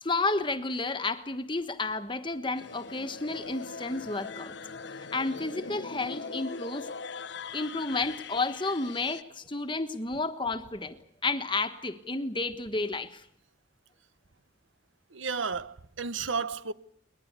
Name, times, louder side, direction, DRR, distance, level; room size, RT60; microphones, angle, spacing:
voice 1, 0.0-4.6 4.9-6.9 7.5-13.2, left 3 dB, 25° left, 1.3 m, -31 dB
sound 1, 2.6-9.2, left 4 dB, 65° left, 0.9 m, -41 dB
voice 2, 15.1-16.7, right 5 dB, 85° right, 1.0 m, -32 dB
22.0 x 21.0 x 8.2 m
head